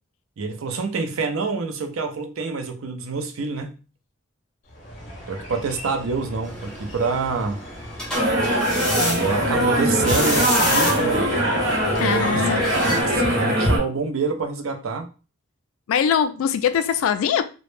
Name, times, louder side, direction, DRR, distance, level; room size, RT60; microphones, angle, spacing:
voice 1, 0.4-3.8 5.3-7.6 8.9-11.4 12.0-15.1, right 4 dB, 85° right, 0.4 m, -27 dB
sound 1, 4.7-13.3, left 1 dB, 30° left, 0.8 m, -34 dB
sound 2, 6.4-13.0, left 1 dB, 5° left, 0.5 m, -30 dB
sound 3, 8.1-13.8, equal, 55° right, 0.8 m, -21 dB
voice 2, 12.0-12.6 15.9-17.4, left 8 dB, 85° left, 0.3 m, -22 dB
2.1 x 2.0 x 3.0 m
head